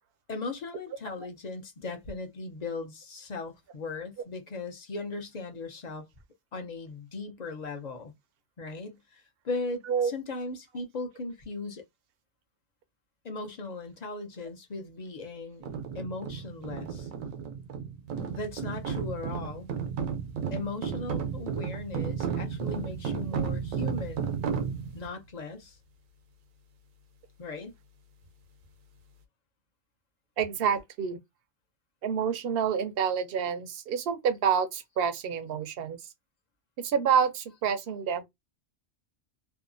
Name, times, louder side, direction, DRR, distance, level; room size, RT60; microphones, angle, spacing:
voice 1, 0.3-6.1 6.5-8.1 8.6-11.8 13.2-15.6 15.9-17.1 18.3-19.7 20.5-24.3 24.9-25.8 27.4-27.8, left 3 dB, 45° left, 0.5 m, -38 dB
sound 1, 15.6-25.1, right 7 dB, 90° right, 1.1 m, -33 dB
voice 2, 30.4-31.2 32.0-36.1 36.8-38.2, right 7 dB, 60° right, 0.6 m, -28 dB
2.7 x 2.3 x 2.5 m
omnidirectional pair, 1.4 m